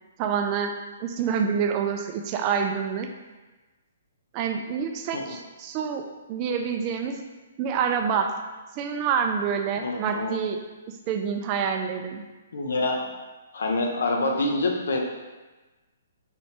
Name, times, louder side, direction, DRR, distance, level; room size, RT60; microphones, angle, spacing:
voice 1, 0.2-0.7 1.0-3.1 4.3-6.0 6.3-7.2 7.6-8.3 8.8-10.6 10.9-12.2, right 7 dB, 30° right, 4 dB, 0.4 m, -27 dB
voice 2, 9.8-10.4 12.5-13.1 13.5-15.0, left 2 dB, 80° left, 1 dB, 0.5 m, -26 dB
4.2 x 3.2 x 2.8 m, 1.2 s
hypercardioid pair, 145°, 0 cm